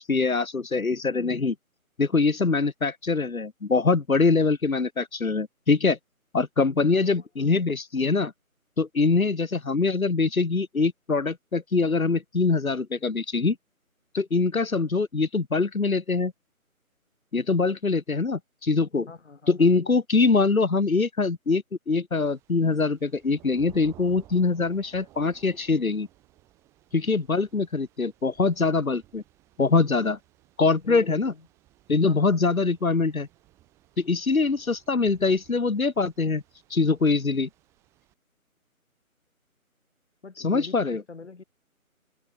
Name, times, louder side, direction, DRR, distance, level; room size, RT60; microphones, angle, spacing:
voice 1, 0.0-1.5 2.0-6.0 6.3-8.3 8.8-13.6 14.1-16.3 17.3-19.1 19.5-26.1 26.9-29.2 29.6-30.2 30.6-31.3 31.9-33.3 34.0-36.4 36.7-37.5 40.4-41.0, left 4 dB, 70° left, 2.1 m, -23 dB
voice 2, 1.2-1.5 6.9-7.7 19.1-19.7 30.8-31.5 32.0-32.4 40.2-41.4, left 4 dB, 50° left, 7.7 m, -43 dB
Thunder / Rain, 22.1-38.1, right 16 dB, 5° right, 2.7 m, -57 dB
figure-of-eight pair, 160°, 43 cm